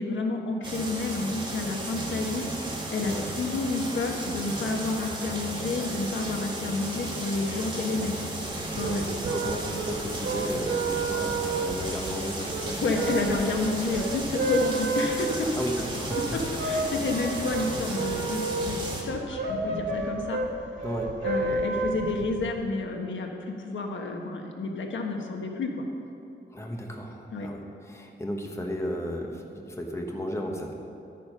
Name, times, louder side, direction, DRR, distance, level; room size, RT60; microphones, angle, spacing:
voice 1, 0.0-2.5 2.9-8.1 8.8-9.1 12.8-15.5 16.3-18.8 19.0-20.4 21.2-25.8 27.3-27.5, left 3 dB, 85° left, 2 dB, 1.4 m, -30 dB
sound 1, 0.6-19.0, right 2 dB, 25° right, 1.7 m, -34 dB
sound 2, 8.5-22.5, right 3 dB, 80° right, 1.4 m, -31 dB
voice 2, 8.8-13.0 15.4-16.2 20.8-21.1 26.5-30.7, equal, 15° left, 1 dB, 1.0 m, -34 dB
12.5 x 9.1 x 5.4 m, 2.8 s
wide cardioid pair, 170°, 19 cm